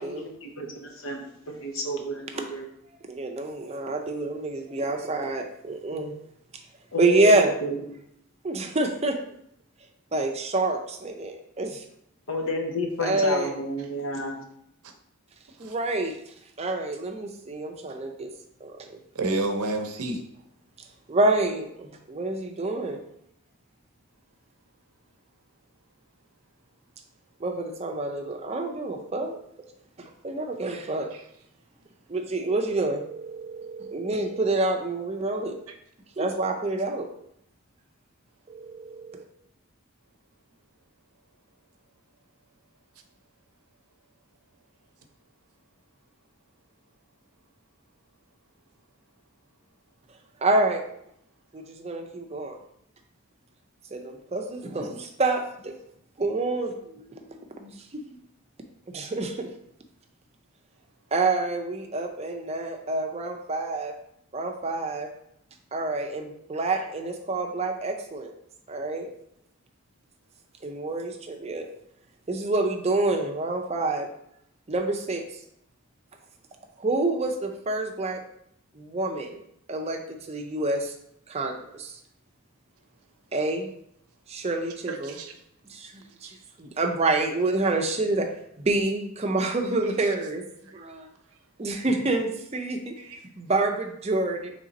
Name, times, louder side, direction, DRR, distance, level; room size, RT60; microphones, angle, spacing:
voice 1, 0.0-2.7 6.9-7.8 12.3-14.4, left 2 dB, 65° left, 2 dB, 0.8 m, -31 dB
voice 2, 3.1-6.2 7.0-7.6 8.4-9.2 10.1-11.8 13.0-13.5 15.6-16.2 16.6-18.3 18.6-19.0 21.1-23.0 27.4-29.4 30.0-31.1 32.1-35.5 36.2-37.1 38.5-39.2 50.4-50.8 51.5-52.5 53.9-55.7 56.2-58.0 58.9-59.5 61.1-63.9 64.3-65.1 65.7-68.3 68.7-69.1 70.6-71.6 72.3-74.1 74.7-75.2 76.8-78.2 78.8-79.4 79.7-80.9 81.3-81.9 83.3-83.7 84.3-85.2 85.7-88.3 88.6-90.4 90.7-91.1 91.6-92.9 93.4-94.5, right 2 dB, 30° right, 3 dB, 0.5 m, -27 dB
voice 3, 19.1-20.2 31.1-31.2 84.9-85.4 86.2-86.3 90.7-90.8 93.0-93.2, right 2 dB, 85° right, 5 dB, 0.6 m, -30 dB
3.8 x 3.3 x 4.0 m, 0.73 s
head